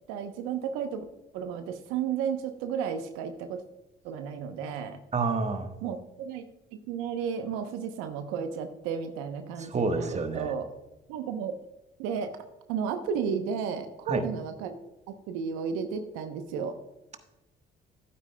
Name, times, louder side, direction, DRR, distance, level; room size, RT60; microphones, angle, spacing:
voice 1, 0.1-1.0 1.3-3.6 4.0-5.0 5.8-6.4 6.9-10.7 11.1-11.6 12.0-12.3 12.7-14.8 15.1-16.8, right 7 dB, 85° right, 7 dB, 0.8 m, -33 dB
voice 2, 5.1-5.7 9.6-10.5 14.1-14.3, right 4 dB, 35° right, 7 dB, 1.3 m, -28 dB
12.0 x 9.3 x 2.2 m, 0.99 s
hypercardioid pair, 60°, 21 cm